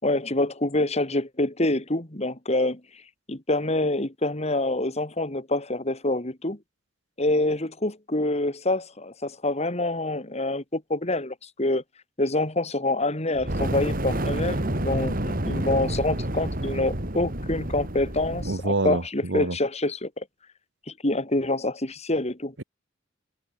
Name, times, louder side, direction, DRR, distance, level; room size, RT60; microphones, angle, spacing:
voice 1, 0.0-2.8 3.3-6.6 7.2-11.8 12.2-20.2 20.9-22.5, left 2 dB, 35° left, 3.0 m, -26 dB
Fire, 13.4-18.6, right 1 dB, 50° right, 4.7 m, -29 dB
voice 2, 18.4-19.6, right 2 dB, 70° right, 1.4 m, -26 dB
head